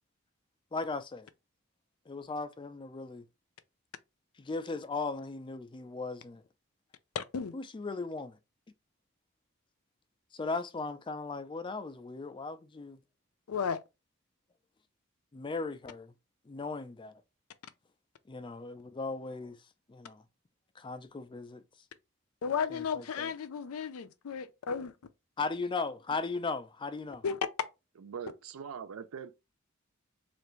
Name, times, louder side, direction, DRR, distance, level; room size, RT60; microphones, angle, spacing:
voice 1, 0.7-1.3 2.1-3.2 4.4-6.4 7.5-8.3 10.3-13.0 15.3-16.1 16.5-17.2 18.3-19.6 19.9-20.2 20.8-21.6 22.7-23.3 25.4-27.2, left 3 dB, 25° left, 0.4 m, -37 dB
voice 2, 7.1-7.5 13.5-13.8 22.4-24.9 27.2-27.4, left 6 dB, 90° left, 0.4 m, -34 dB
voice 3, 28.0-29.4, right 7 dB, 85° right, 0.4 m, -42 dB
3.3 x 2.5 x 3.0 m
head